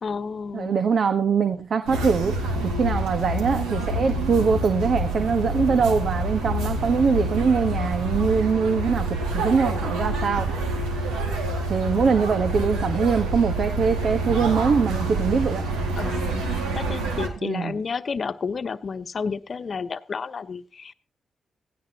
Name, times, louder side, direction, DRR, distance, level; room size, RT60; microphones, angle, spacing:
voice 1, 0.0-0.8 12.0-12.2 16.0-20.9, left 5 dB, 55° left, 11 dB, 1.0 m, -31 dB
voice 2, 0.5-2.4 2.6-10.5 11.7-15.6 17.4-17.8, right 5 dB, 65° right, 8 dB, 1.2 m, -23 dB
sound 1, 1.9-17.3, right 2 dB, 90° right, 2.2 m, -27 dB
16.5 x 16.0 x 2.9 m, 0.33 s
hypercardioid pair, 40°, 0 cm